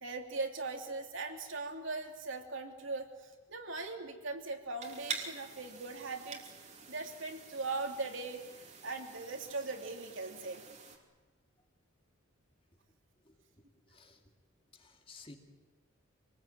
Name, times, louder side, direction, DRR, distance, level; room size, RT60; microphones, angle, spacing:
voice 1, 0.0-6.4 6.9-8.4 8.8-10.6, right 3 dB, 60° right, 3 dB, 3.1 m, -40 dB
sound 1, 4.8-11.0, right 5 dB, 35° right, 2.9 m, -47 dB
voice 2, 13.9-14.2 14.7-15.4, left 3 dB, 25° left, 3 dB, 2.4 m, -54 dB
27.0 x 20.0 x 8.8 m, 1.2 s
head